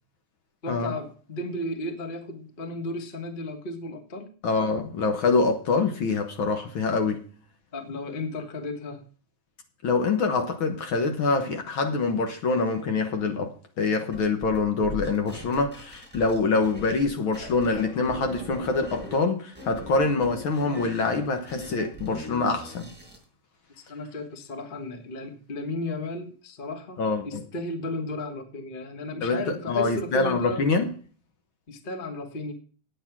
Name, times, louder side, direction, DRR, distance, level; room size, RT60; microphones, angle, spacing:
voice 1, 0.6-4.3 7.7-9.0 23.8-30.7 31.7-32.5, left 2 dB, 85° left, 0.4 m, -34 dB
voice 2, 4.4-7.2 9.8-22.9 27.0-27.4 29.2-29.4 29.7-30.9, left 3 dB, 60° left, 1.4 m, -25 dB
sound 1, 14.1-17.1 17.3-19.2 19.5-23.2, equal, 5° right, 5.0 m, -40 dB
9.1 x 8.7 x 5.9 m
omnidirectional pair, 3.6 m